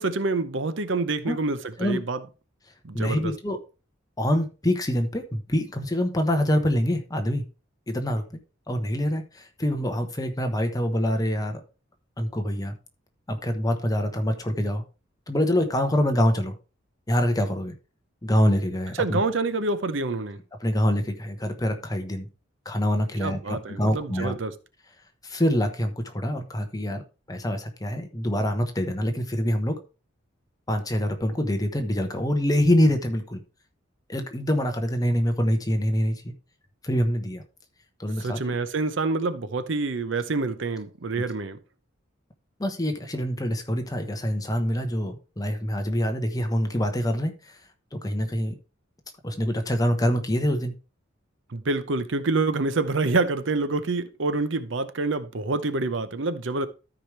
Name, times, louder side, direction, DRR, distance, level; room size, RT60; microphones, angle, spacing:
voice 1, 0.0-2.2 2.8-3.3 19.0-20.4 23.2-24.5 38.2-41.6 51.5-56.7, right 3 dB, 65° right, 0.7 m, -27 dB
voice 2, 2.9-3.6 4.2-7.4 7.9-8.2 8.7-11.6 12.2-12.7 13.3-14.8 15.3-16.5 17.1-17.7 18.2-19.2 20.6-22.3 22.6-24.4 25.2-27.0 27.3-29.8 30.7-33.4 34.1-36.3 36.8-37.4 38.0-38.5 42.6-47.5 47.9-48.6 49.2-50.7, equal, 20° left, 1.1 m, -25 dB
13.0 x 5.0 x 3.3 m
head